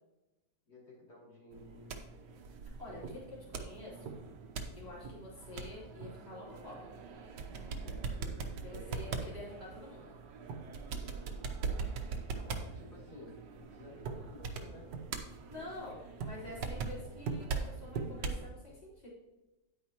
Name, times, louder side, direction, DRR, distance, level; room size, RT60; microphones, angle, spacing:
voice 1, 0.7-2.0 7.8-9.0 11.1-11.5 11.9-15.0 15.6-15.9, left 2 dB, 65° left, -6 dB, 3.4 m, -54 dB
sound 1, 1.5-18.5, right 4 dB, 85° right, 1.6 m, -41 dB
voice 2, 2.8-4.2 4.8-6.9 8.6-10.1 15.5-19.1, left 2 dB, 20° left, -6 dB, 3.5 m, -48 dB
9.4 x 9.2 x 2.9 m, 1.0 s
omnidirectional pair, 1.9 m